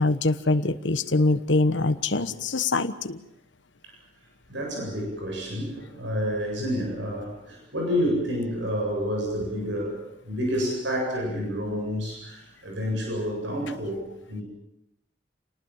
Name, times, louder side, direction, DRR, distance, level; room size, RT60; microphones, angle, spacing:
voice 1, 0.0-3.2, left 2 dB, 75° left, 11 dB, 1.2 m, -23 dB
voice 2, 4.5-14.4, equal, 75° right, 0 dB, 8.0 m, -29 dB
29.0 x 19.5 x 7.3 m, 0.83 s
head